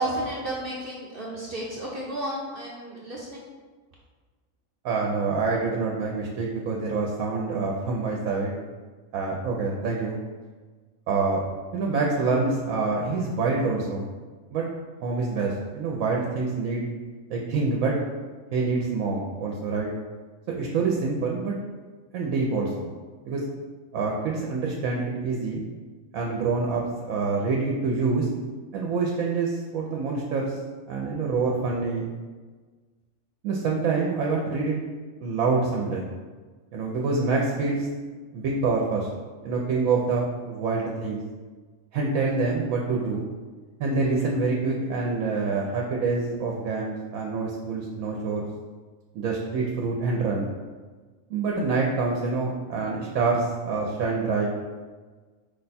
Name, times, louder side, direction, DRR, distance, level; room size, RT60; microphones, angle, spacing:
voice 1, 0.0-3.5, right 1 dB, 55° right, -5 dB, 0.7 m, -32 dB
voice 2, 4.8-8.5 9.1-10.2 11.1-11.5 11.7-14.0 14.5-14.7 15.0-16.9 17.3-18.0 18.5-19.9 20.5-21.5 22.1-22.9 23.2-23.4 23.9-25.6 26.1-26.8 27.1-28.3 28.7-30.6 30.9-32.1 33.4-34.8 35.2-36.1 36.7-37.9 38.3-39.1 39.4-41.2 41.9-43.2 43.8-48.5 49.1-50.5 51.3-54.5, right 4 dB, 85° right, -1 dB, 1.0 m, -26 dB
4.8 x 2.2 x 4.0 m, 1.4 s
omnidirectional pair, 1.4 m